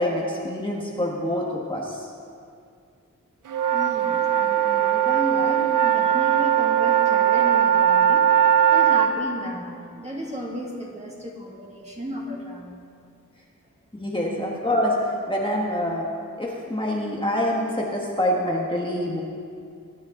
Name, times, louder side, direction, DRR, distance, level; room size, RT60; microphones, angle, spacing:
voice 1, 0.0-2.1 14.0-16.1 16.4-19.2, left 1 dB, 15° left, -3 dB, 1.5 m, -26 dB
sound 1, 3.5-9.1, right 10 dB, 75° right, 0.6 m, -19 dB
voice 2, 3.7-12.8 14.3-14.4, equal, 20° right, -3 dB, 2.5 m, -34 dB
24.0 x 10.5 x 3.9 m, 2.3 s
wide cardioid pair, 105°, 32 cm